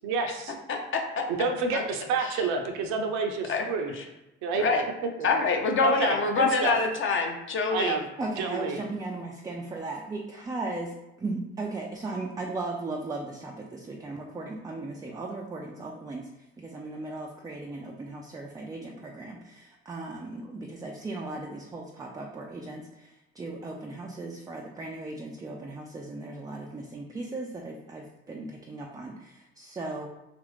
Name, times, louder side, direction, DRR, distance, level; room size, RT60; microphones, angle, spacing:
voice 1, 0.0-0.5 1.3-3.9 4.4-4.6 5.2-5.3 5.8-6.7 7.7-8.0 8.4-8.8, right 4 dB, 60° right, 4 dB, 0.6 m, -29 dB
voice 2, 0.7-1.2 1.7-1.8 3.5-3.7 3.9-4.0 4.5-4.8 5.2-8.0, left 4 dB, 40° left, 2 dB, 0.6 m, -25 dB
voice 3, 8.2-30.1, right 2 dB, 10° right, 0 dB, 0.3 m, -37 dB
3.0 x 2.5 x 3.2 m, 0.94 s
figure-of-eight pair, 50°, 32 cm